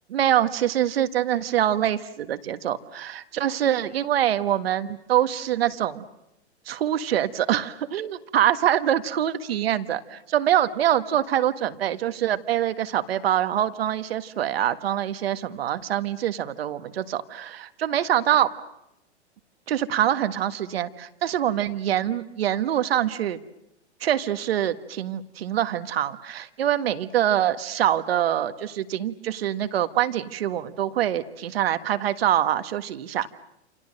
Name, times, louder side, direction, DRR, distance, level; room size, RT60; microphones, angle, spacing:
voice 1, 0.1-6.0 6.7-18.5 19.7-23.4 24.0-33.3, right 11 dB, 60° right, 11 dB, 1.6 m, -24 dB
28.5 x 28.5 x 6.6 m, 0.85 s
figure-of-eight pair, 115°, 34 cm